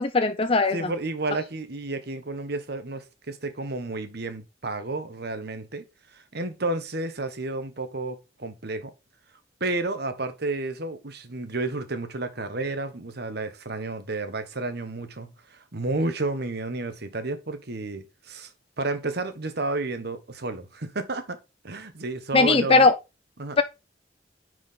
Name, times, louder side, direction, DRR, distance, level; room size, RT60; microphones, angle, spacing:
voice 1, 0.0-0.9 22.3-23.0 23.6-23.7, left 3 dB, 30° left, 0.5 m, -19 dB
voice 2, 0.7-8.9 9.6-18.5 18.8-21.4 21.6-22.9 23.4-23.6, right 2 dB, 60° right, 1.4 m, -31 dB
9.7 x 4.8 x 3.8 m
head